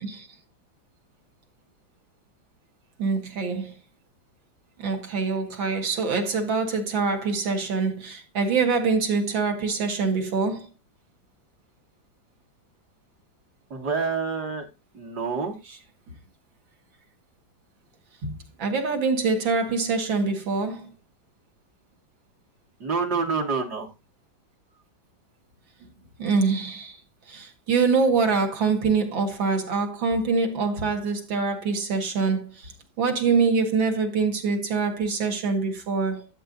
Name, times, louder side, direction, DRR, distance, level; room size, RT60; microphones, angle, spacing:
voice 1, 3.0-3.7 4.8-10.7 15.7-15.8 18.2-20.9 26.2-27.0 27.3-36.3, right 4 dB, 80° right, 2.5 m, -25 dB
voice 2, 13.7-14.7 14.9-15.6 22.8-23.9, right 4 dB, 55° right, 2.5 m, -27 dB
12.5 x 7.9 x 2.6 m
omnidirectional pair, 2.1 m